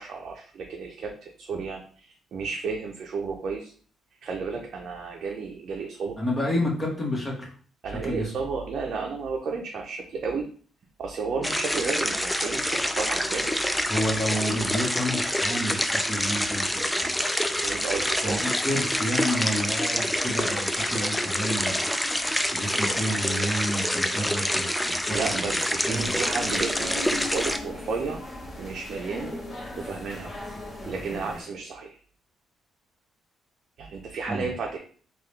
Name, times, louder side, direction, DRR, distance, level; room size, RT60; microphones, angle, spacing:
voice 1, 0.0-3.7 4.2-6.2 7.8-10.5 11.0-14.0 17.5-18.4 25.1-28.2 28.6-29.4 29.8-30.3 30.9-32.0 33.8-34.8, right 4 dB, 60° right, 0 dB, 0.6 m, -32 dB
voice 2, 6.2-7.5 8.0-8.3 13.9-17.1 18.2-21.9 22.5-25.2 25.5-25.6 25.8-26.1 34.3-34.5, equal, 20° left, -2 dB, 1.3 m, -30 dB
sound 1, 11.4-27.6, equal, 5° left, 0.3 m, -27 dB
sound 2, 25.9-31.4, left 2 dB, 35° left, 1.1 m, -38 dB
3.7 x 2.4 x 3.2 m, 0.43 s
cardioid pair, 90°, 0 cm